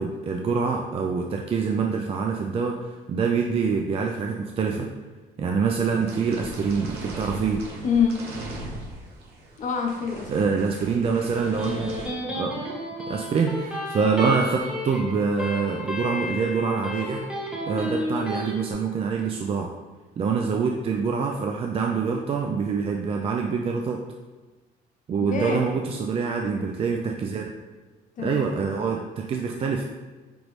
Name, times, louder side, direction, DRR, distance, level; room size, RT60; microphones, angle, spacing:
voice 1, 0.0-4.9 5.4-7.6 10.3-12.0 12.3-12.6 13.1-17.3 17.7-19.7 20.2-24.0 25.1-27.5 28.2-29.8, right 5 dB, 35° right, 2 dB, 0.4 m, -25 dB
sound 1, 5.8-12.1, right 1 dB, 75° right, 0.9 m, -39 dB
voice 2, 7.8-8.2 9.6-10.5 25.2-25.8 28.2-28.7, left 6 dB, 50° left, 2 dB, 0.8 m, -26 dB
Electric guitar, 11.1-18.5, left 1 dB, 5° right, 1.2 m, -32 dB
5.2 x 3.0 x 3.1 m, 1.3 s
cardioid pair, 110°, 17 cm